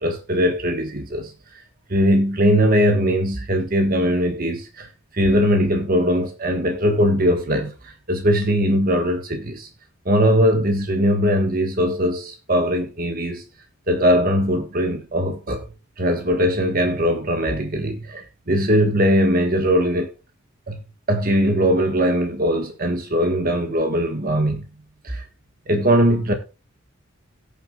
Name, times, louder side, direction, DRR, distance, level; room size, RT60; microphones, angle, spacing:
voice 1, 0.0-1.3 1.9-9.7 10.0-13.4 13.9-15.6 16.0-20.1 20.7-20.8 21.1-24.7 25.0-25.2 25.7-26.3, equal, 45° right, 1.5 m, -20 dB
18.0 x 7.1 x 2.4 m
head